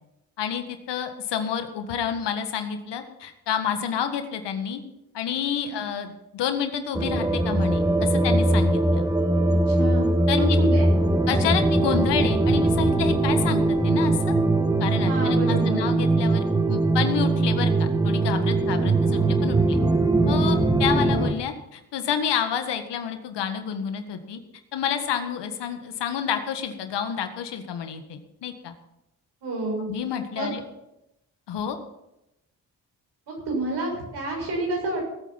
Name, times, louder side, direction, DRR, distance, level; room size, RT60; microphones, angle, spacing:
voice 1, 0.4-4.8 5.1-9.0 10.3-10.6 11.3-14.2 14.8-19.8 20.3-24.4 24.7-28.7 29.9-30.6 31.5-31.8, left 8 dB, 75° left, 7 dB, 1.8 m, -29 dB
sound 1, 6.9-21.3, right 2 dB, 10° right, 1.5 m, -21 dB
voice 2, 9.7-10.1 10.3-10.9 15.1-15.9 18.8-18.9 29.4-29.9 30.4-30.5 33.3-35.0, right 2 dB, 75° right, -1 dB, 6.9 m, -29 dB
18.5 x 8.7 x 5.9 m, 0.88 s
supercardioid pair, 45°, 41 cm